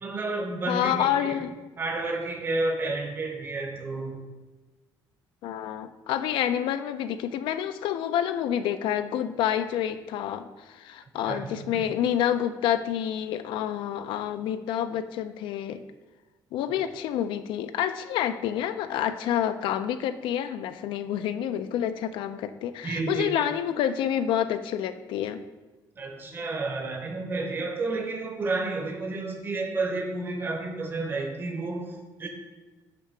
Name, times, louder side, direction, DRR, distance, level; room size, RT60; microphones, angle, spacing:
voice 1, 0.0-1.4 1.8-4.2 11.3-11.8 22.8-23.5 26.0-32.3, right 3 dB, 25° right, 3 dB, 0.7 m, -31 dB
voice 2, 0.7-1.5 5.4-15.8 16.5-25.4, left 10 dB, 85° left, 10 dB, 0.4 m, -28 dB
6.9 x 2.8 x 5.8 m, 1.2 s
cardioid pair, 155°, 8 cm